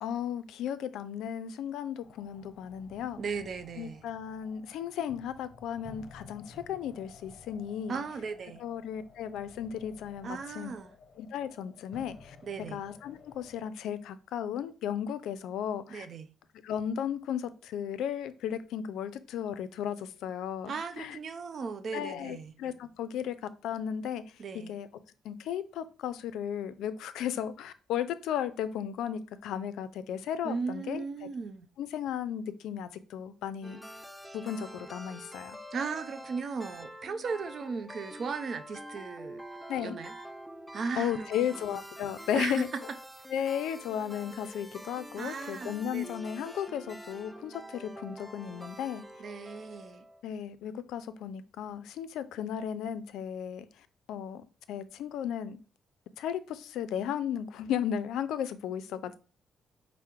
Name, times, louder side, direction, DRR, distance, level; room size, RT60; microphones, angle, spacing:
voice 1, 0.0-3.2 3.8-8.0 8.6-10.7 11.2-12.4 12.7-16.1 16.6-21.2 21.9-24.2 24.5-24.9 25.2-31.3 31.8-33.8 34.3-35.6 39.7-40.0 41.0-42.7 43.3-49.0 50.2-53.7 54.1-55.6 56.2-59.1, left 9 dB, 85° left, 0.4 m, -35 dB
sound 1, 2.0-13.7, left 4 dB, 45° left, 0.7 m, -54 dB
voice 2, 3.2-4.0 7.9-8.6 10.2-10.9 12.4-12.8 15.9-16.3 20.7-22.5 24.4-24.7 30.4-31.7 35.7-39.4 39.8-40.1 40.7-41.3 42.3-42.6 45.2-46.1 49.2-50.0, right 5 dB, 50° right, 0.5 m, -36 dB
sound 2, 33.6-50.2, equal, ahead, 0.4 m, -46 dB
4.7 x 2.0 x 4.4 m
cardioid pair, 90°, 0 cm